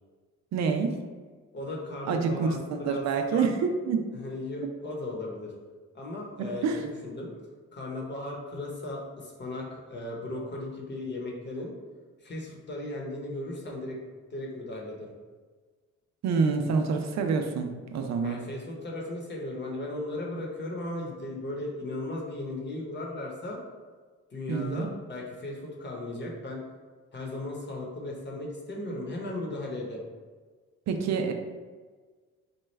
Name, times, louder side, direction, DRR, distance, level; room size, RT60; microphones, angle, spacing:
voice 1, 0.5-1.0 2.1-4.0 6.4-6.8 16.2-18.4 24.5-24.9 30.9-31.3, right 5 dB, 65° right, 5 dB, 0.5 m, -27 dB
voice 2, 1.5-3.5 4.1-5.5 5.9-7.3 7.7-11.7 12.2-14.0 14.3-15.1 18.2-23.6 24.3-26.6 27.1-30.0, left 2 dB, 35° left, -1 dB, 1.0 m, -36 dB
4.3 x 2.3 x 3.2 m, 1.4 s
cardioid pair, 90°, 30 cm